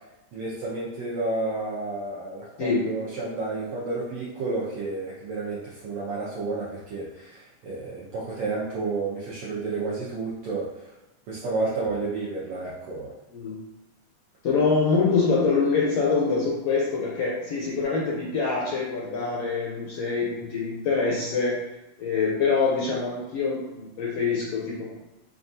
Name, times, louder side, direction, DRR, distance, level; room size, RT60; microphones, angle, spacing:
voice 1, 0.3-10.8 11.3-13.1, right 3 dB, 85° right, -7 dB, 1.3 m, -31 dB
voice 2, 13.3-13.6 14.4-21.6 22.0-24.9, left 4 dB, 80° left, -4 dB, 1.4 m, -25 dB
5.7 x 2.4 x 2.6 m, 0.98 s
omnidirectional pair, 3.5 m